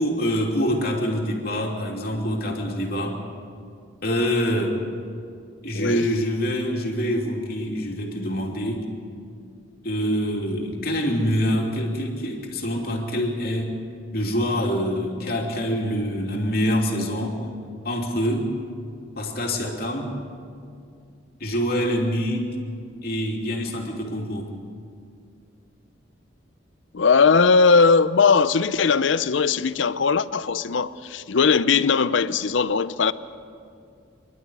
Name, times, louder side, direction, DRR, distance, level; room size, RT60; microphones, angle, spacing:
voice 1, 0.0-3.2 4.0-4.8 5.6-8.8 9.8-13.7 14.1-17.4 17.8-18.5 19.2-20.2 21.4-22.5 23.0-24.5, equal, 50° left, 2.9 m, -25 dB
voice 2, 5.7-6.1 26.9-33.1, left 5 dB, 80° left, 0.6 m, -19 dB
25.5 x 12.0 x 9.5 m
head